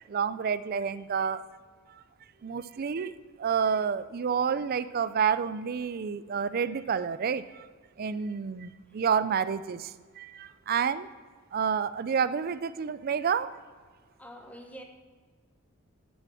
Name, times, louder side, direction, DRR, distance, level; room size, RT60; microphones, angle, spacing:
voice 1, 0.1-1.4 2.4-3.1 3.4-7.6 8.0-9.9 10.2-11.1 11.5-13.5, right 6 dB, 45° right, 16 dB, 0.4 m, -29 dB
voice 2, 14.2-14.8, equal, 5° left, 3 dB, 1.0 m, -47 dB
8.8 x 6.8 x 7.0 m, 1.5 s
head